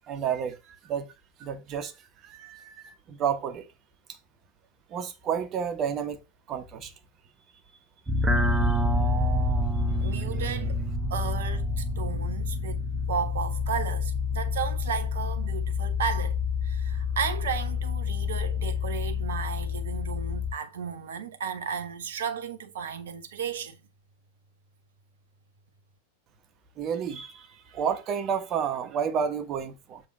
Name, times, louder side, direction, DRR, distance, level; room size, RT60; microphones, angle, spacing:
voice 1, 0.1-1.1 1.4-1.9 2.2-3.7 4.9-6.2 6.5-6.9 8.7-8.8 26.8-30.0, right 7 dB, 30° right, 1.3 m, -31 dB
sound 1, 8.1-20.5, left 3 dB, 15° right, 1.2 m, -28 dB
voice 2, 10.0-10.8 11.1-12.8 13.1-23.8, right 7 dB, 60° right, 1.3 m, -34 dB
7.3 x 3.8 x 6.2 m
figure-of-eight pair, 90°, 0 cm